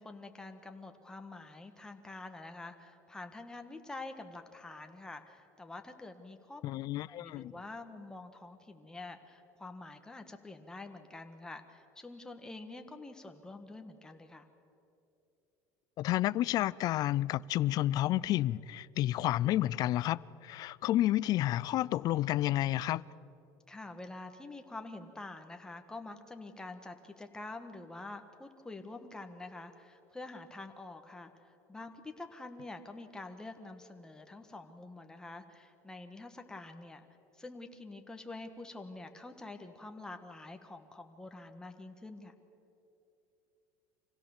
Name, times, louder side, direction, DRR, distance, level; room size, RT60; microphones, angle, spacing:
voice 1, 0.0-6.8 7.1-14.5 23.7-37.1 37.4-42.3, left 2 dB, 10° left, 1.5 m, -47 dB
voice 2, 6.6-7.5 16.0-23.0, left 14 dB, 50° left, 0.4 m, -30 dB
25.5 x 16.5 x 7.2 m
cardioid pair, 130°, 9 cm